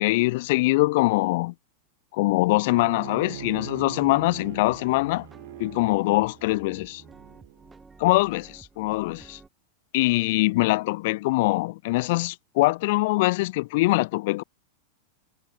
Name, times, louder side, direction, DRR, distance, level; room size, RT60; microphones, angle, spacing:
voice 1, 0.0-1.5 2.1-5.3 5.6-7.0 8.0-9.4 9.9-14.4, left 21 dB, 50° left, 0.4 m, -23 dB
Bowed string instrument, 2.7-7.8, right 15 dB, 55° right, 2.6 m, -42 dB
sound 1, 3.3-9.5, right 4 dB, 10° right, 3.6 m, -51 dB
figure-of-eight pair, 90°, 0 cm